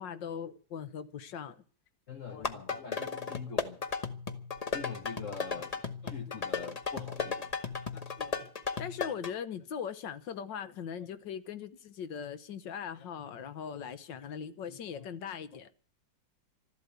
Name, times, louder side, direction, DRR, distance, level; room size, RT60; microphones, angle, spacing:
voice 1, 0.0-1.6 2.3-2.8 3.5-3.6 5.8-6.4 7.9-8.5 8.8-15.7, left 7 dB, 85° left, 1.8 m, -41 dB
voice 2, 2.1-3.8 4.7-7.5, left 6 dB, 50° left, 1.2 m, -44 dB
sound 1, 2.3-9.3, left 5 dB, 25° left, 0.9 m, -36 dB
13.5 x 12.0 x 8.1 m
omnidirectional pair, 1.9 m